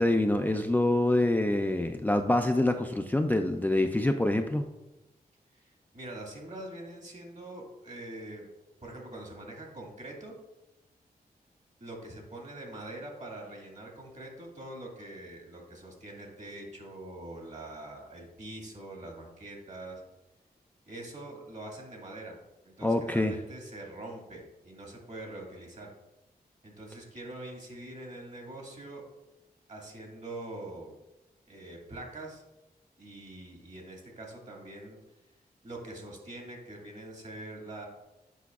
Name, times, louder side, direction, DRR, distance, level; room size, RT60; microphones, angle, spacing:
voice 1, 0.0-4.6 22.8-23.3, left 1 dB, 10° left, 5 dB, 0.4 m, -26 dB
voice 2, 5.5-8.5 8.8-10.4 11.8-20.0 20.9-22.4 22.6-25.9 26.6-29.0 29.7-30.9 31.5-32.4 33.0-35.0 35.6-37.9, right 1 dB, 45° right, 0 dB, 1.9 m, -44 dB
8.1 x 5.0 x 2.4 m, 1.0 s
cardioid pair, 55°, 17 cm